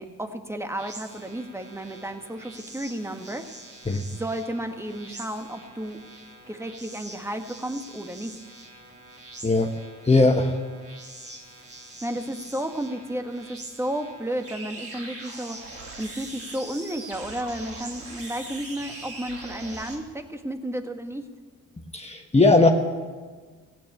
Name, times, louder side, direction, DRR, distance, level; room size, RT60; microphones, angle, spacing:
voice 1, 0.0-3.5 4.1-6.0 6.5-8.4 12.0-15.6 16.0-21.3, right 1 dB, 10° right, 6 dB, 1.6 m, -32 dB
sound 1, 0.8-20.0, right 2 dB, 45° right, 3.4 m, -43 dB
voice 2, 10.0-10.5 21.9-22.7, left 3 dB, 20° left, 3 dB, 1.3 m, -18 dB
15.5 x 9.2 x 8.5 m, 1.5 s
supercardioid pair, 55°, 32 cm